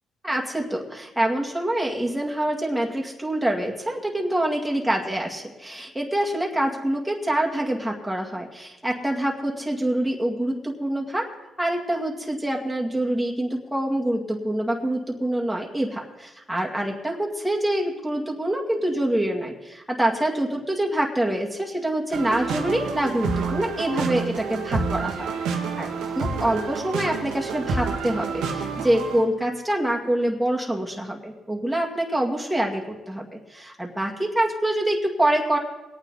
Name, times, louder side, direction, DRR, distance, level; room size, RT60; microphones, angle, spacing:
voice 1, 0.2-11.3 11.6-25.9 26.2-35.6, right 1 dB, 5° right, -1 dB, 2.2 m, -26 dB
sound 1, 22.1-29.2, right 5 dB, 90° right, 1.6 m, -29 dB
22.5 x 9.0 x 4.1 m, 1.0 s
cardioid pair, 90°, 0 cm